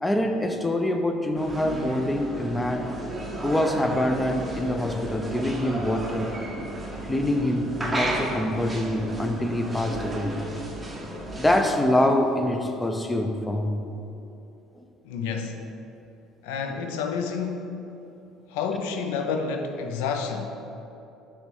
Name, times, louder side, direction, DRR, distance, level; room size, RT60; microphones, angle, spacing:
voice 1, 0.0-3.0 3.4-6.3 7.1-10.4 11.4-13.8 14.8-14.9, left 1 dB, 10° left, 5 dB, 0.5 m, -25 dB
sound 1, 1.4-11.6, right 1 dB, 15° right, 0.8 m, -33 dB
voice 2, 15.0-15.6 16.4-17.7 18.5-20.5, left 5 dB, 90° left, 5 dB, 0.5 m, -29 dB
5.9 x 3.2 x 5.3 m, 2.8 s
supercardioid pair, 95°, 0 cm